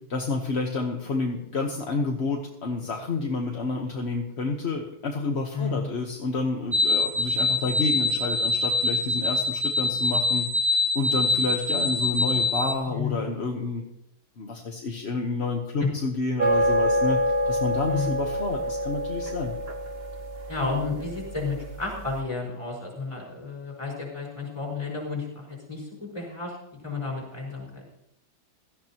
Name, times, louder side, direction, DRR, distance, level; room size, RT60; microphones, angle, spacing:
voice 1, 0.1-13.8 14.4-19.5, left 3 dB, 40° left, 2 dB, 1.1 m, -29 dB
voice 2, 5.5-5.9 12.9-13.3 15.8-15.9 17.9-18.2 20.5-26.6 26.8-27.8, left 4 dB, 15° left, -2 dB, 4.7 m, -32 dB
sound 1, 6.7-12.7, left 2 dB, 15° right, 1.2 m, -24 dB
sound 2, 16.4-21.9, equal, 50° right, 0.7 m, -27 dB
17.0 x 14.0 x 3.0 m, 0.78 s
omnidirectional pair, 2.3 m